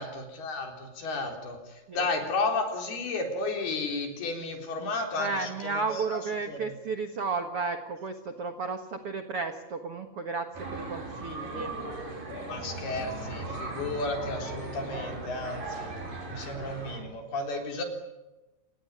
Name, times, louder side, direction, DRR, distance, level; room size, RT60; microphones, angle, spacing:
voice 1, 0.0-6.2 6.5-6.7 12.4-15.9 16.3-17.8, left 3 dB, 60° left, 4 dB, 5.8 m, -33 dB
voice 2, 4.8-11.7, right 4 dB, 75° right, 7 dB, 1.3 m, -33 dB
sound 1, 10.5-17.0, right 2 dB, 50° right, 8.3 m, -38 dB
29.5 x 18.0 x 9.9 m, 1.1 s
omnidirectional pair, 5.2 m